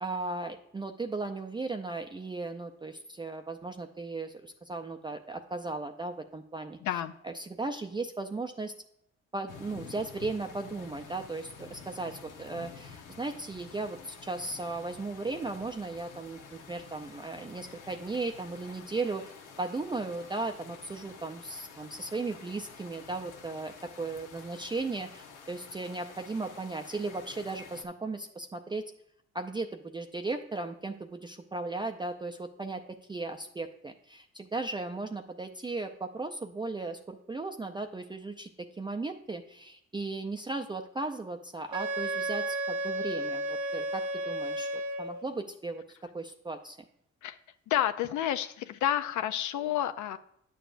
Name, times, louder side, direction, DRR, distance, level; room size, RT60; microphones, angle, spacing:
voice 1, 0.0-8.7 9.3-28.8 29.3-46.8, right 3 dB, 15° right, 4 dB, 0.4 m, -36 dB
voice 2, 6.8-7.1 47.2-47.4 47.7-50.2, left 11 dB, 75° left, 10 dB, 0.4 m, -30 dB
sound 1, 9.5-27.8, left 6 dB, 90° left, 1.0 m, -50 dB
Wind instrument woodwind instrument, 41.7-45.3, right 1 dB, 70° right, 0.8 m, -33 dB
9.9 x 6.9 x 2.5 m, 0.77 s
cardioid pair, 90°, 30 cm